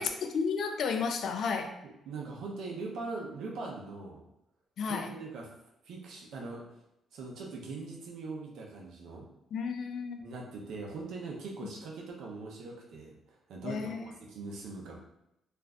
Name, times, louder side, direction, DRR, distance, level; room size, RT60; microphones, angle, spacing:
voice 1, 0.0-1.7 4.8-5.1 9.5-10.2 13.6-14.1, left 5 dB, 65° left, 6 dB, 0.3 m, -32 dB
voice 2, 2.1-4.2 4.9-5.5 5.8-6.6 7.1-9.3 10.2-13.1 13.5-15.0, right 3 dB, 80° right, -1 dB, 0.7 m, -41 dB
2.5 x 2.1 x 3.6 m, 0.83 s
cardioid pair, 90°, 0 cm